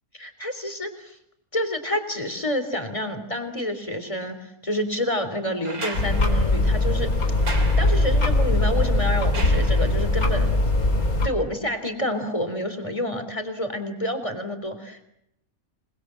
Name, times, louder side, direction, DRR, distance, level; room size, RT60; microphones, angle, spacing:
voice 1, 0.2-1.2 1.5-7.1 7.8-10.5 11.2-15.0, left 1 dB, 20° left, 8 dB, 3.5 m, -28 dB
sound 1, 5.6-10.3 11.8-11.9, right 3 dB, 85° right, 3.8 m, -37 dB
sound 2, 5.9-11.3, left 2 dB, 80° left, 4.2 m, -21 dB
28.0 x 21.0 x 7.7 m, 0.78 s
omnidirectional pair, 1.5 m